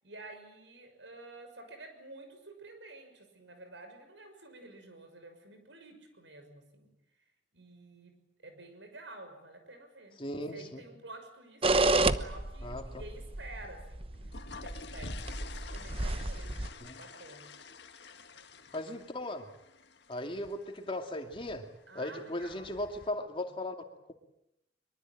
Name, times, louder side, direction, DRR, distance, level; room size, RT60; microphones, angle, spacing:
voice 1, 0.0-7.0 7.5-14.2 14.6-17.5 21.9-22.7, right 2 dB, 85° right, 7 dB, 6.3 m, -50 dB
voice 2, 10.2-10.8 12.6-13.0 16.8-17.0 18.7-19.4 20.1-21.6 21.9-23.8, left 1 dB, 30° left, 4 dB, 2.6 m, -37 dB
sound 1, 11.6-16.7, right 2 dB, 30° right, 1.0 m, -30 dB
sound 2, 14.0-23.1, left 4 dB, 65° left, 1.8 m, -50 dB
23.5 x 23.5 x 9.0 m, 0.83 s
head